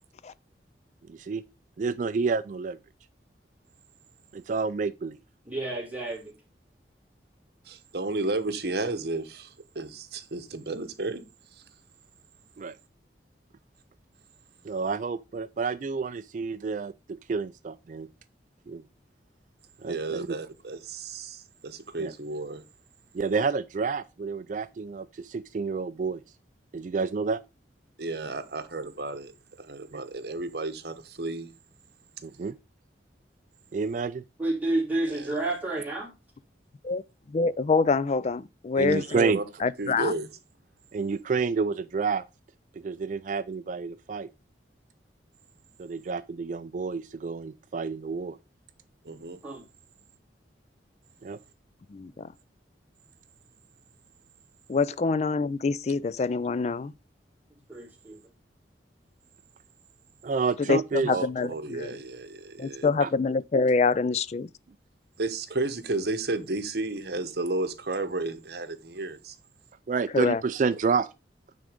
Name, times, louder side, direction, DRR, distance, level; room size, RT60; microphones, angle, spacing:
voice 1, 1.1-1.4 1.8-2.8 4.3-5.2 12.6-12.8 14.6-18.1 18.7-18.8 19.8-20.4 22.0-22.1 23.1-26.2 26.7-27.4 29.9-30.0 32.2-32.5 33.7-34.2 38.8-39.4 40.9-42.2 42.8-44.3 45.8-48.4 51.2-51.4 60.2-61.1 63.0-63.1 69.9-71.1, right 5 dB, 45° right, 0.3 m, -29 dB
voice 2, 5.5-6.3 34.4-36.1 49.4-49.6 57.7-58.2, right 2 dB, 10° right, 3.0 m, -30 dB
voice 3, 7.6-11.2 11.5-11.6 19.8-22.6 28.0-29.3 29.6-31.5 35.1-35.4 38.9-39.4 39.8-40.3 49.0-49.4 61.1-62.9 65.2-69.4, right 2 dB, 60° right, 1.0 m, -32 dB
voice 4, 37.3-40.1 51.9-52.3 54.7-56.9 60.6-61.5 61.8-61.9 62.6-64.5 70.1-70.4, left 4 dB, 35° left, 0.3 m, -26 dB
9.2 x 3.8 x 5.0 m
head